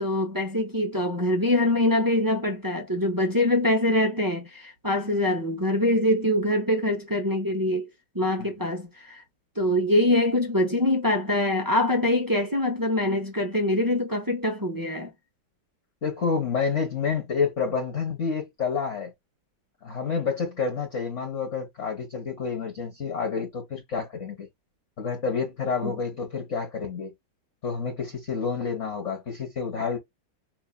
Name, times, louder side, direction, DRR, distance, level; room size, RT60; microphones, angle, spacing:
voice 1, 0.0-7.9 8.1-9.2 9.6-15.1 25.8-25.9, left 1 dB, 20° right, 0.5 m, -24 dB
voice 2, 16.0-19.1 19.8-24.5 25.0-27.1 27.6-30.0, left 5 dB, 40° left, 1.4 m, -29 dB
5.5 x 2.8 x 2.3 m
omnidirectional pair, 2.1 m